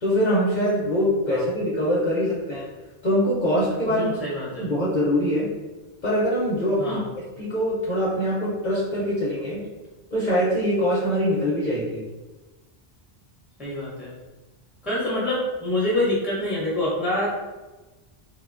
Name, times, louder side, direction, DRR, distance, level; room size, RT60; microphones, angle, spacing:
voice 1, 0.0-2.7 3.0-4.1 4.6-5.5 6.0-9.6 10.1-12.0, equal, 50° left, -7 dB, 0.7 m, -23 dB
voice 2, 3.9-4.7 6.8-7.0 13.6-14.1 14.8-17.3, left 1 dB, ahead, -7 dB, 0.6 m, -26 dB
2.9 x 2.2 x 2.4 m, 1.2 s
omnidirectional pair, 1.1 m